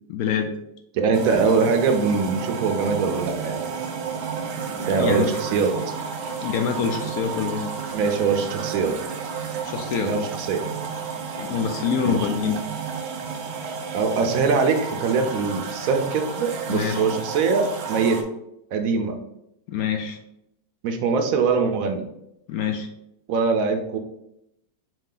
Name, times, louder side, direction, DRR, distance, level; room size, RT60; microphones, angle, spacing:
voice 1, 0.1-0.5 4.7-5.3 6.4-7.6 9.6-10.2 11.4-12.6 16.7-17.1 19.7-20.2 22.5-22.9, left 7 dB, 70° left, 5 dB, 0.9 m, -25 dB
voice 2, 0.9-3.7 4.9-5.7 7.9-9.0 10.0-10.6 12.0-12.2 13.9-18.2 18.7-19.1 20.8-22.0 23.3-24.0, right 5 dB, 65° right, 5 dB, 0.9 m, -22 dB
sound 1, 1.1-18.2, right 6 dB, 80° right, 0.6 m, -32 dB
5.0 x 2.7 x 3.8 m, 0.80 s
omnidirectional pair, 1.8 m